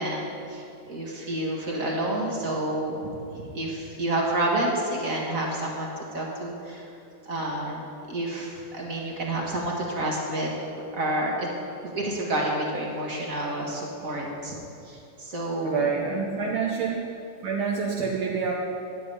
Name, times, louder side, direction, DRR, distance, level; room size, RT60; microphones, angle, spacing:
voice 1, 0.0-3.0 3.3-6.9 7.2-7.8 8.1-10.6 10.9-11.5 11.8-14.6 14.8-15.9, right 1 dB, 40° right, -2 dB, 1.8 m, -29 dB
voice 2, 15.6-17.1 17.4-18.5, right 6 dB, 75° right, -1 dB, 1.7 m, -27 dB
12.0 x 9.1 x 5.4 m, 2.8 s
omnidirectional pair, 2.4 m